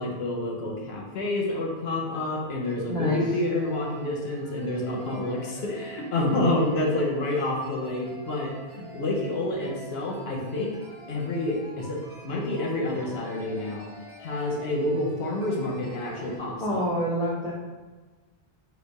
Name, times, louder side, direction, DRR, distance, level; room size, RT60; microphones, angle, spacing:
voice 1, 0.0-8.5 8.9-10.7 11.1-13.9 14.2-16.8, left 1 dB, 75° left, -1 dB, 1.0 m, -28 dB
sound 1, 1.8-1.9 2.1-2.2 2.6-2.7 3.1-16.4, right 1 dB, 30° right, 0.8 m, -47 dB
voice 2, 2.9-3.2 16.1-16.3 16.6-17.5, equal, 5° left, -7 dB, 1.2 m, -27 dB
5.0 x 2.3 x 4.6 m, 1.3 s
omnidirectional pair, 1.1 m